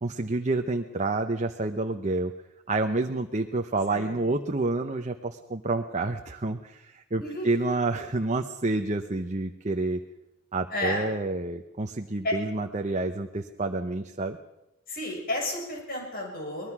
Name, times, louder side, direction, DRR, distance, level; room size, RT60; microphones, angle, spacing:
voice 1, 0.0-2.3 2.7-10.0 10.5-14.4, right 2 dB, 30° right, 5 dB, 0.9 m, -29 dB
voice 2, 3.9-4.2 7.2-7.6 10.7-11.0 12.2-12.3 14.9-16.7, left 1 dB, 40° left, 1 dB, 7.1 m, -31 dB
23.5 x 20.0 x 6.1 m, 0.89 s
head